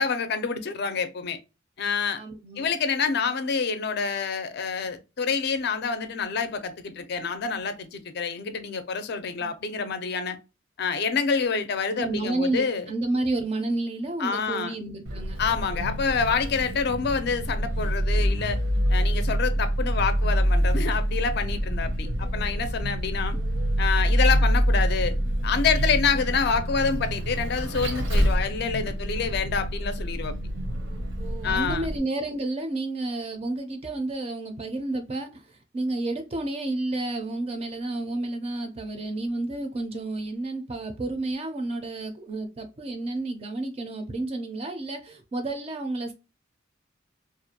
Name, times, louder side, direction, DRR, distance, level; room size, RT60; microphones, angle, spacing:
voice 1, 0.0-1.4 1.8-2.2 2.6-10.4 10.8-12.9 14.2-14.7 15.4-18.6 18.9-23.4 23.8-25.1 25.4-30.3 31.4-31.9, left 5 dB, 55° left, 0.4 m, -27 dB
voice 2, 2.1-2.7 9.4-9.5 12.0-15.4 31.2-35.4 35.7-46.1, right 2 dB, 30° right, 0.4 m, -31 dB
Vehicle, 15.1-32.0, equal, 85° right, 0.8 m, -26 dB
2.4 x 2.2 x 2.7 m
head